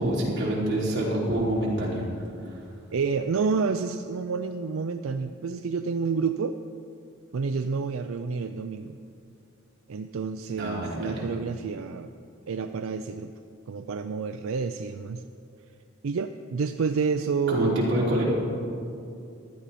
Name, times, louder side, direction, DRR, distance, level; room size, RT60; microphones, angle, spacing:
voice 1, 0.0-2.0 10.6-11.2 17.5-18.3, right 1 dB, 55° right, -5 dB, 3.4 m, -26 dB
voice 2, 2.9-6.6 7.3-9.0 9.9-12.1 12.5-13.3 13.7-15.2 16.0-17.8, right 5 dB, 85° right, 8 dB, 0.4 m, -29 dB
15.0 x 11.5 x 4.2 m, 2.6 s
head